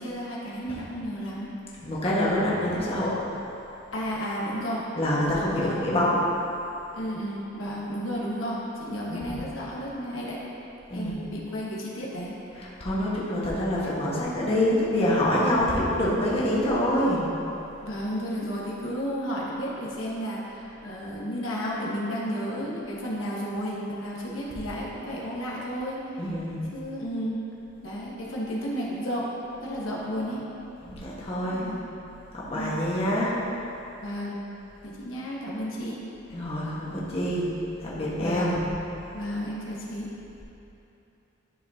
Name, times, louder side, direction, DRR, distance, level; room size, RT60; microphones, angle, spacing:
voice 1, 0.0-1.5 3.9-4.8 5.6-5.8 6.9-10.4 10.9-12.3 17.8-26.0 26.7-27.4 27.8-29.3 29.6-30.5 31.5-31.8 32.5-32.9 34.0-34.4 34.8-36.0 38.2-38.6 39.1-40.1, equal, 80° left, -5 dB, 1.4 m, -32 dB
voice 2, 1.8-3.2 4.9-6.2 9.1-9.4 10.9-11.2 12.5-17.2 26.2-26.6 30.8-31.7 32.3-33.4 36.3-37.5 37.8-38.7, left 1 dB, 30° left, -7 dB, 1.4 m, -26 dB
11.5 x 6.4 x 2.8 m, 2.9 s
head